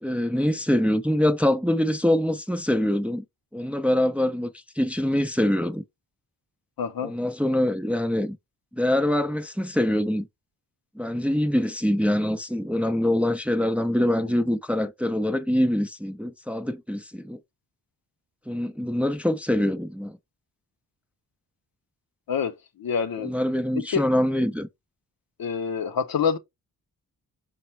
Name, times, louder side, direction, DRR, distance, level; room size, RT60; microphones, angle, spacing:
voice 1, 0.0-3.2 3.5-5.8 7.0-8.4 8.7-10.3 11.0-17.4 18.5-20.2 23.2-24.7, left 1 dB, 5° right, 0.5 m, -24 dB
voice 2, 6.8-7.1 22.3-23.3 23.8-24.0 25.4-26.4, left 6 dB, 65° left, 0.7 m, -27 dB
5.2 x 2.1 x 4.3 m
cardioid pair, 65°, 39 cm